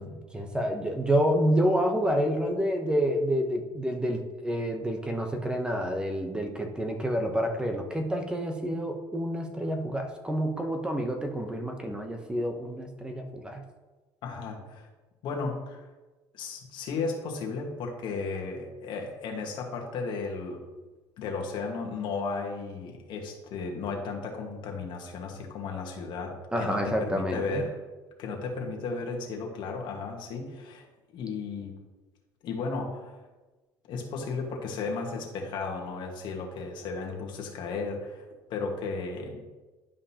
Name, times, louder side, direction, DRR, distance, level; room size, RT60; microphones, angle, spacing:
voice 1, 0.0-13.6 26.5-27.6, equal, 10° right, 4 dB, 0.8 m, -28 dB
voice 2, 14.2-14.9 15.2-15.8 16.3-20.6 21.2-27.8 28.2-30.9 31.1-31.7 32.4-33.2 33.9-38.2 38.5-39.5, left 4 dB, 60° left, 1 dB, 1.5 m, -34 dB
11.0 x 5.2 x 2.9 m, 1.2 s
cardioid pair, 120°, 9 cm